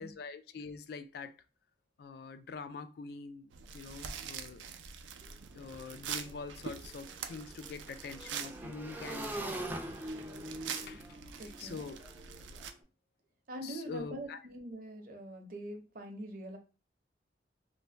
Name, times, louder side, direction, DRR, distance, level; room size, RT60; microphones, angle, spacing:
voice 1, 0.0-1.3 2.0-4.7 5.5-9.6 10.8-11.1 11.6-12.0 13.6-14.4, left 4 dB, 60° left, 0.3 m, -44 dB
sound 1, 3.5-12.7, right 7 dB, 90° right, 0.4 m, -45 dB
Motorcycle / Engine, 5.2-5.3 5.6-12.7, right 1 dB, 10° right, 0.4 m, -44 dB
voice 2, 11.4-11.8 13.5-16.6, right 1 dB, 50° right, 0.6 m, -44 dB
2.6 x 2.1 x 3.2 m
head